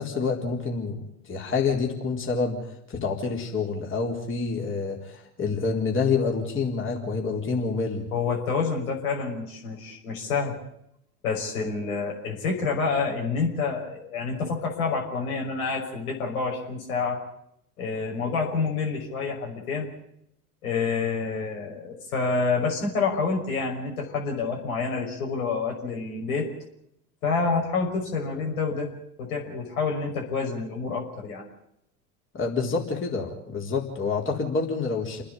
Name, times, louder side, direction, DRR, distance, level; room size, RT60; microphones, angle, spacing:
voice 1, 0.0-2.6 2.9-8.0 32.3-35.2, left 4 dB, 30° left, 1 dB, 4.2 m, -27 dB
voice 2, 8.1-10.5 11.2-17.2 17.8-19.9 20.6-26.5 27.2-28.9 29.2-31.4, left 4 dB, 80° left, 0 dB, 6.0 m, -28 dB
29.5 x 10.0 x 10.0 m, 0.76 s
hypercardioid pair, 85°, 43 cm